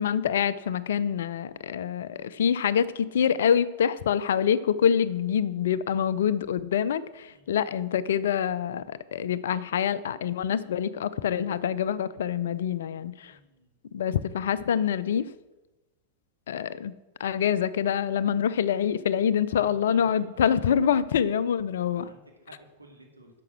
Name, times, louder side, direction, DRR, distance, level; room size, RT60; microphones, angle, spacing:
voice 1, 0.0-13.3 13.9-15.3 16.5-16.9 17.2-22.1, left 8 dB, 60° left, 16 dB, 0.4 m, -26 dB
voice 2, 13.2-13.7 19.5-20.6 21.9-23.4, right 2 dB, 85° right, 0 dB, 1.9 m, -51 dB
10.5 x 6.8 x 6.1 m, 1.1 s
figure-of-eight pair, 90°, 0 cm